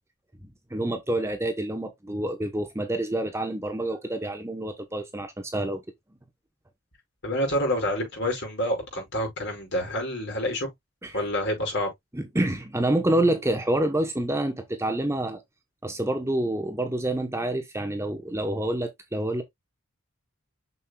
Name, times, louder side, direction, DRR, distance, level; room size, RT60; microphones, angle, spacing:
voice 1, 0.7-5.8 11.0-11.1 12.1-15.4 15.8-19.4, right 1 dB, 10° right, 0.9 m, -27 dB
voice 2, 7.2-10.7 11.1-11.9, equal, 50° left, 5.4 m, -28 dB
7.0 x 6.4 x 2.3 m
head